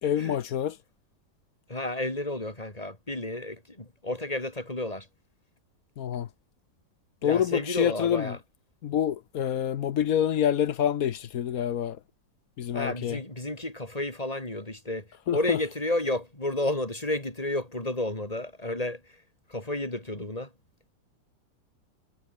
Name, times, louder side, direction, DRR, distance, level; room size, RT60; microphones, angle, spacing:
voice 1, 0.0-0.8 6.0-6.3 7.2-8.4 8.8-12.0 12.6-13.2 15.3-15.6, left 10 dB, 60° left, 1.1 m, -27 dB
voice 2, 1.7-5.1 7.2-8.4 12.7-19.0 19.5-20.5, left 1 dB, 20° left, 4.6 m, -31 dB
omnidirectional pair, 2.0 m